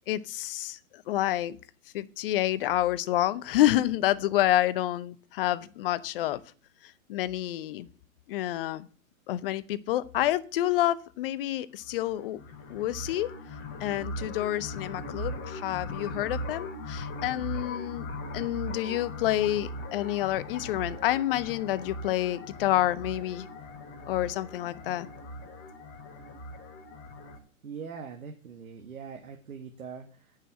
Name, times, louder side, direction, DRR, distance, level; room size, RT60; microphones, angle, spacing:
voice 1, 0.1-1.6 1.9-6.4 7.1-7.9 8.3-8.9 9.3-12.4 12.7-13.3 13.8-18.1 18.3-23.5 24.1-25.1, left 14 dB, 40° left, 17 dB, 0.7 m, -28 dB
sound 1, 11.8-27.4, left 1 dB, 25° left, 2.2 m, -39 dB
voice 2, 27.6-30.4, right 6 dB, 80° right, 4 dB, 1.7 m, -42 dB
9.2 x 5.7 x 7.3 m, 0.40 s
hypercardioid pair, 125°, 42 cm